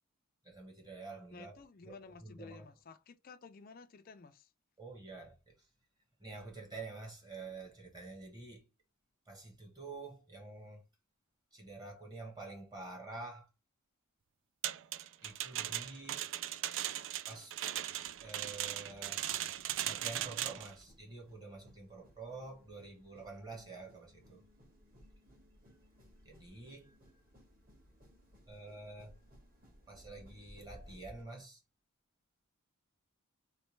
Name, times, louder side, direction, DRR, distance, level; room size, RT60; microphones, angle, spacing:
voice 1, 0.4-2.7 4.8-5.7 6.2-8.7 9.3-10.8 11.5-13.5 15.2-16.3 17.3-17.6 18.2-19.2 19.8-24.4 26.2-27.0 28.5-29.2 29.9-31.6, right 3 dB, 15° right, 1.0 m, -48 dB
voice 2, 1.3-4.5, left 4 dB, 40° left, 0.4 m, -53 dB
sound 1, 14.6-20.7, right 12 dB, 55° right, 0.3 m, -38 dB
sound 2, 18.0-31.2, equal, 40° right, 1.5 m, -61 dB
3.2 x 3.2 x 3.1 m
head